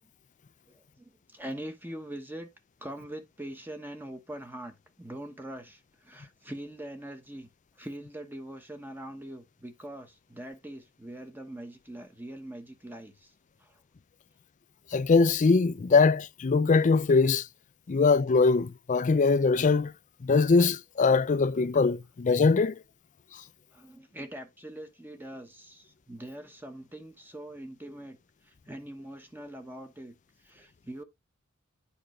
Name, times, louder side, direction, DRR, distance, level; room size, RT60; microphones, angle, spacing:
voice 1, 0.7-2.5 2.8-7.5 7.7-13.3 13.6-13.8 23.7-31.0, right 1 dB, 10° right, 1.0 m, -43 dB
voice 2, 14.9-17.5 17.9-19.9 20.2-22.8 23.3-23.4, left 4 dB, 35° left, 0.4 m, -22 dB
9.9 x 5.0 x 3.1 m
head